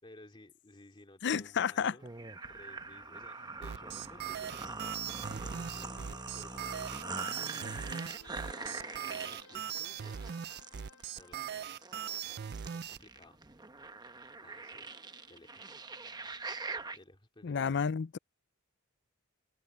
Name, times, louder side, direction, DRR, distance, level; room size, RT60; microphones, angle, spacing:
voice 1, 0.0-2.1 2.4-10.2 10.9-12.3 12.7-13.4 14.4-14.9 15.3-15.8 16.9-17.8, left 1 dB, 25° left, 2.6 m, -57 dB
sound 1, 1.2-12.5, left 3 dB, 90° left, 3.4 m, -60 dB
voice 2, 1.2-1.9 17.4-18.2, left 7 dB, 55° left, 0.5 m, -31 dB
sound 2, 2.0-17.0, right 3 dB, 20° right, 0.9 m, -43 dB
sound 3, 3.6-13.0, right 8 dB, 50° right, 0.4 m, -40 dB
head